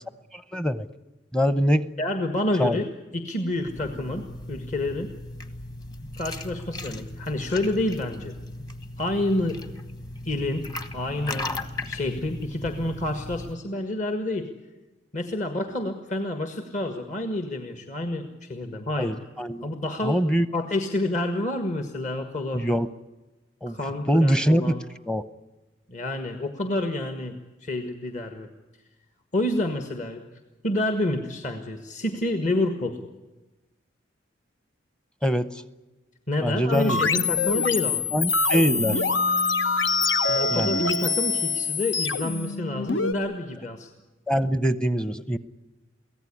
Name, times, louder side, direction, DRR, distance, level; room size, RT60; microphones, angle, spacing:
voice 1, 0.3-0.9 1.3-1.9 2.6-2.8 19.0-19.6 20.0-20.5 22.5-22.9 23.6-23.8 24.1-24.7 25.1-25.2 35.2-35.5 36.4-37.0 38.1-39.0 40.5-40.8 44.3-45.4, equal, 5° left, 13 dB, 0.7 m, -23 dB
voice 2, 2.0-2.9 3.1-5.1 6.2-8.3 9.0-9.6 10.2-10.6 10.9-11.5 11.8-14.5 15.1-19.1 19.6-20.2 20.5-22.7 23.7-24.8 25.9-28.5 29.3-30.2 30.6-33.0 36.3-38.0 40.3-43.9, left 1 dB, 40° left, 6 dB, 1.6 m, -28 dB
sound 1, 3.5-13.6, left 2 dB, 20° left, 1.3 m, -37 dB
sound 2, 36.7-43.1, left 4 dB, 80° left, 1.1 m, -25 dB
23.5 x 17.0 x 9.9 m, 1.1 s
head